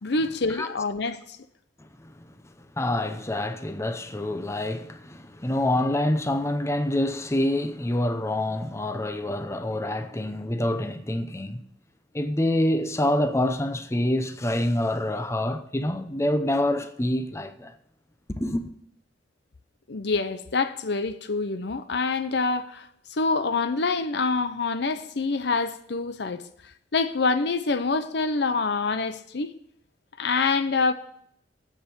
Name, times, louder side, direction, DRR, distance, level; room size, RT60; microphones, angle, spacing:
voice 1, 0.0-1.4 19.9-26.4 26.9-29.5 30.2-30.9, left 4 dB, 70° left, 0.7 m, -26 dB
voice 2, 1.8-11.6 12.1-17.7 18.3-18.7, left 1 dB, 15° left, 0.7 m, -27 dB
7.9 x 7.4 x 8.6 m
head